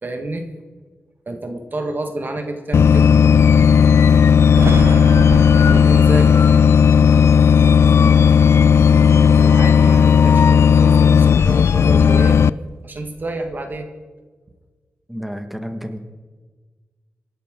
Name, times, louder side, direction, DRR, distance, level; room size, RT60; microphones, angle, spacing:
voice 1, 0.0-0.5 1.2-3.0 5.5-6.4 9.2-12.4 12.8-13.9, right 2 dB, 45° right, 5 dB, 1.7 m, -29 dB
sound 1, 2.7-12.5, left 7 dB, 70° left, 0.4 m, -12 dB
Thunder, 4.5-10.0 10.3-11.8 12.1-13.8, right 6 dB, 65° right, 0.5 m, -32 dB
voice 2, 15.1-16.0, equal, 5° right, 5 dB, 1.7 m, -30 dB
27.0 x 11.0 x 3.8 m, 1.4 s
cardioid pair, 75°, 5 cm